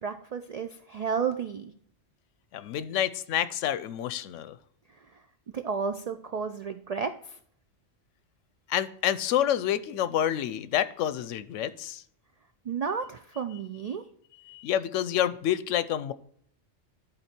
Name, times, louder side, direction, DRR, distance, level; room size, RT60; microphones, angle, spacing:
voice 1, 0.0-1.7 5.5-7.4 12.7-14.0, right 6 dB, 75° right, 9 dB, 0.3 m, -32 dB
voice 2, 2.5-4.6 8.7-12.0 14.4-16.1, left 11 dB, 90° left, 15 dB, 0.9 m, -28 dB
11.0 x 4.3 x 4.3 m, 0.63 s
omnidirectional pair, 1.2 m